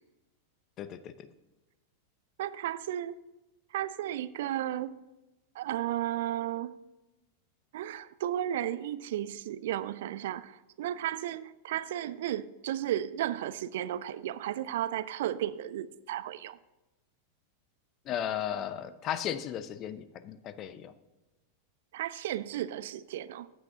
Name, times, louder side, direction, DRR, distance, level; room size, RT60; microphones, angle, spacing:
voice 1, 0.8-1.3 18.1-20.9, left 10 dB, 35° left, 0.6 m, -35 dB
voice 2, 2.4-3.2 3.7-5.0 5.5-6.7 7.7-16.6 21.9-23.5, right 12 dB, 55° right, 0.4 m, -34 dB
14.5 x 9.3 x 2.8 m
figure-of-eight pair, 90°, 0 cm